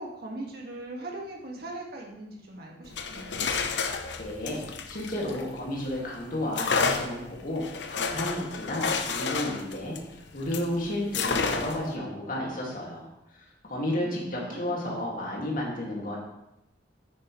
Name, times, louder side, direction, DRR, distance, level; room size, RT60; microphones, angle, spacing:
voice 1, 0.0-3.5 13.8-14.9, right 1 dB, 55° right, -1 dB, 2.0 m, -40 dB
sound 1, 2.8-5.9 6.5-10.7 11.1-11.9, left 5 dB, 65° left, 0.7 m, -30 dB
voice 2, 4.2-4.6 4.9-10.0 10.3-13.1 13.7-16.2, left 1 dB, 50° left, -3 dB, 2.3 m, -32 dB
9.4 x 9.1 x 3.2 m, 0.86 s
head